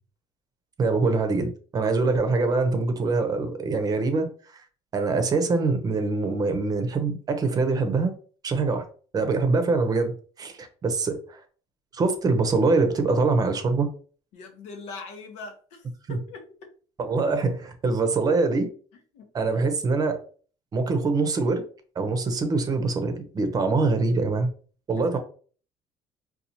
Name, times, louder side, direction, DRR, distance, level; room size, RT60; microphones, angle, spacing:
voice 1, 0.8-4.6 4.9-8.1 8.4-8.8 9.1-11.4 11.9-13.9 16.1-16.2 17.0-18.7 19.3-20.2 20.7-21.6 22.0-24.5 24.9-25.2, right 3 dB, 35° right, 0.7 m, -24 dB
voice 2, 14.3-16.4 19.1-19.3 24.9-25.2, left 4 dB, 85° left, 0.8 m, -41 dB
4.2 x 2.3 x 2.7 m
cardioid pair, 115°, 11 cm